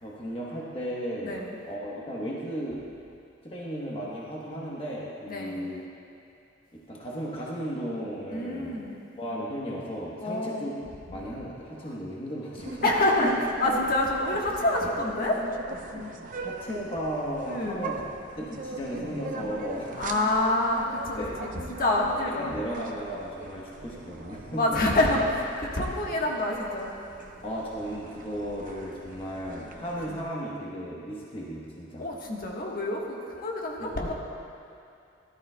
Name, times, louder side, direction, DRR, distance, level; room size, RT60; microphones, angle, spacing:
voice 1, 0.0-1.4 1.7-2.8 3.4-5.8 6.7-8.8 9.2-10.7 11.1-12.9 13.2-13.3 15.9-18.0 18.4-20.0 21.2-21.5 22.0-24.8 27.4-32.1 33.8-34.1, equal, 30° left, -5 dB, 1.1 m, -35 dB
voice 2, 1.2-1.6 5.3-5.7 8.3-9.0 10.2-10.7 12.8-13.3 13.6-15.4 17.5-17.9 20.0-22.5 24.5-26.9 32.0-34.1, left 2 dB, 50° left, -2 dB, 1.3 m, -27 dB
sound 1, 12.6-30.2, right 3 dB, 45° right, 0.7 m, -41 dB
17.5 x 12.5 x 2.3 m, 2.5 s
head